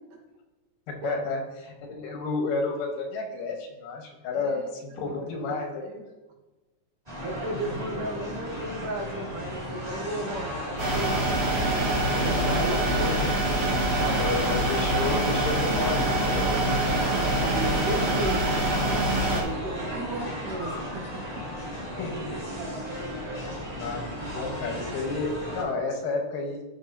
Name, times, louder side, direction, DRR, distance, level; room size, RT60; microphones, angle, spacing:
voice 1, 0.9-6.0 7.5-7.8 12.1-12.2 14.1-16.7 17.2-17.5 19.3-19.6 22.0-22.4 23.4-23.5 23.8-26.6, left 3 dB, 90° left, 2 dB, 2.8 m, -32 dB
voice 2, 4.3-4.6 5.0-5.2 5.8-6.0 7.2-11.2 12.2-13.3 14.0-14.5 17.1-18.5 19.4-21.4 23.7-23.9, right 1 dB, 75° right, 0 dB, 3.1 m, -34 dB
sound 1, 7.1-25.6, equal, 15° right, 2.1 m, -35 dB
sound 2, 10.8-19.4, right 1 dB, 40° right, 1.6 m, -25 dB
12.5 x 6.5 x 2.8 m, 1.1 s
omnidirectional pair, 3.7 m